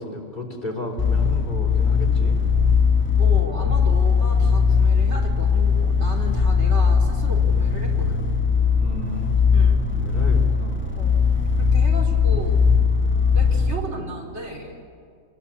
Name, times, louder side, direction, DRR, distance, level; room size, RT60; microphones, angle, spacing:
voice 1, 0.0-2.8 8.8-9.3 9.8-11.1, left 1 dB, 35° left, 0 dB, 4.1 m, -33 dB
sound 1, 1.0-13.7, left 6 dB, 10° left, 2.0 m, -19 dB
voice 2, 3.2-8.2 9.5-9.8 10.9-12.6 13.3-14.8, right 1 dB, 55° right, -1 dB, 4.1 m, -35 dB
27.0 x 21.0 x 8.6 m, 2.2 s
omnidirectional pair, 1.4 m